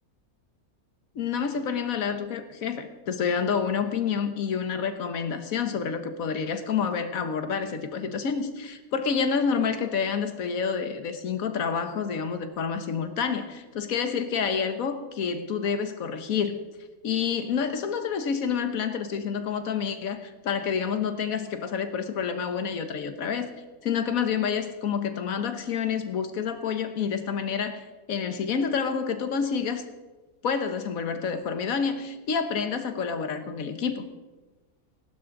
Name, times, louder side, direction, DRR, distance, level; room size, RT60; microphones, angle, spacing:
voice 1, 1.1-16.6 17.0-23.5 23.8-29.8 30.4-34.1, left 6 dB, 65° left, 8 dB, 1.5 m, -28 dB
18.0 x 12.0 x 3.9 m, 1.2 s
omnidirectional pair, 1.6 m